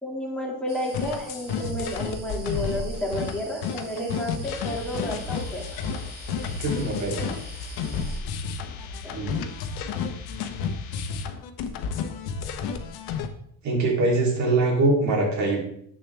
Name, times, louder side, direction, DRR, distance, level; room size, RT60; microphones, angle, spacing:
voice 1, 0.0-5.8 8.8-9.1, equal, ahead, -3 dB, 2.1 m, -31 dB
sound 1, 0.7-8.2, right 2 dB, 25° right, 2.3 m, -46 dB
sound 2, 0.9-13.3, left 6 dB, 80° left, 1.1 m, -31 dB
sound 3, 4.4-11.3, left 3 dB, 60° left, 1.4 m, -39 dB
voice 2, 6.6-7.2 9.1-9.4 13.6-15.6, right 2 dB, 50° right, -1 dB, 3.2 m, -23 dB
10.5 x 7.7 x 3.4 m, 0.69 s
cardioid pair, 160°, 37 cm